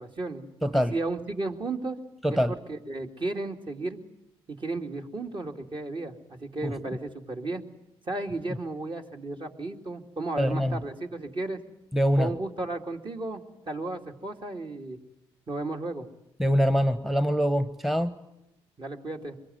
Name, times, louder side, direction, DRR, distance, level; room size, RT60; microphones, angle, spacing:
voice 1, 0.0-2.0 2.3-4.0 4.5-7.6 8.1-11.6 12.2-15.0 15.5-16.1 18.8-19.4, right 2 dB, 40° right, 3 dB, 2.7 m, -34 dB
voice 2, 0.6-0.9 2.2-2.5 6.6-6.7 10.4-10.8 11.9-12.3 16.4-18.1, equal, ahead, 12 dB, 1.2 m, -24 dB
24.0 x 22.5 x 9.5 m, 0.88 s
hypercardioid pair, 45°, 13 cm